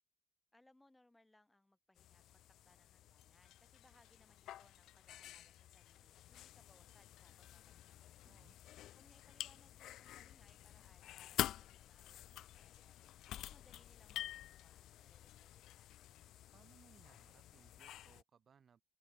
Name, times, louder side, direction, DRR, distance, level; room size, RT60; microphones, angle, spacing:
voice 1, 0.5-8.5 8.9-13.0 13.3-16.2, left 1 dB, 5° left, 0.8 m, -71 dB
sound 1, 2.0-18.2, left 13 dB, 65° left, 0.3 m, -49 dB
sound 2, 3.1-16.3, left 15 dB, 85° left, 2.2 m, -72 dB
voice 2, 8.2-8.6 16.5-18.8, right 7 dB, 35° right, 0.7 m, -67 dB
cardioid pair, 175°, 0 cm